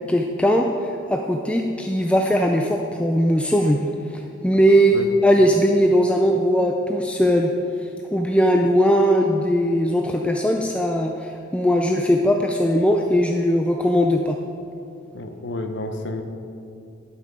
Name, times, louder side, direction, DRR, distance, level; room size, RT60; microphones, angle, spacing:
voice 1, 0.1-0.7 1.1-3.8 4.4-7.5 8.1-14.4, equal, 5° left, 2 dB, 0.3 m, -19 dB
voice 2, 15.1-16.2, left 2 dB, 65° left, 6 dB, 0.7 m, -30 dB
11.5 x 5.7 x 4.9 m, 2.6 s
head